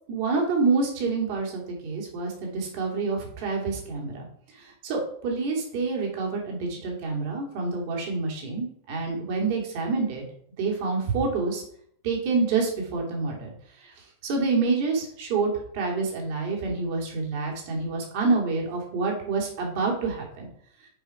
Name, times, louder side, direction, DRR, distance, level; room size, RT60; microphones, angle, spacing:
voice 1, 0.1-4.3 4.6-10.3 10.6-11.6 12.0-13.5 13.8-13.9 14.2-20.5, right 4 dB, 50° right, -1 dB, 2.7 m, -27 dB
7.2 x 5.1 x 4.7 m, 0.64 s
figure-of-eight pair, 90°, 0 cm